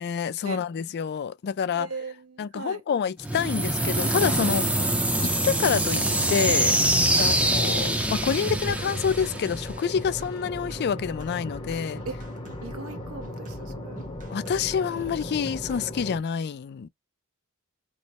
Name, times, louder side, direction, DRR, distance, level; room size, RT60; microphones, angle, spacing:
voice 1, 0.0-1.9 2.4-4.7 5.2-6.0 6.3-6.8 7.2-12.0 14.3-16.9, left 7 dB, 50° left, 0.3 m, -27 dB
voice 2, 1.7-2.8 7.1-7.3 12.0-12.2 12.6-14.0, right 4 dB, 80° right, 0.9 m, -39 dB
sound 1, 3.2-10.1, right 1 dB, 5° right, 0.5 m, -24 dB
sound 2, 4.2-16.2, left 1 dB, 25° left, 0.7 m, -38 dB
sound 3, 8.0-15.8, right 1 dB, 35° right, 0.9 m, -43 dB
3.2 x 2.0 x 4.1 m
head